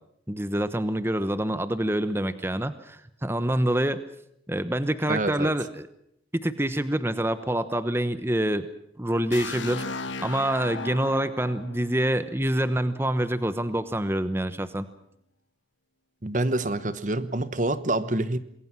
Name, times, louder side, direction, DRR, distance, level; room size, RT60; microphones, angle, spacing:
voice 1, 0.3-4.0 4.5-5.9 6.4-8.7 9.0-14.9, right 1 dB, 15° right, 12 dB, 1.0 m, -26 dB
voice 2, 5.1-5.5 16.2-18.4, right 2 dB, 40° right, 14 dB, 1.1 m, -26 dB
sound 1, 9.3-13.1, left 3 dB, 85° left, 1.7 m, -37 dB
27.5 x 21.5 x 6.1 m, 0.75 s
head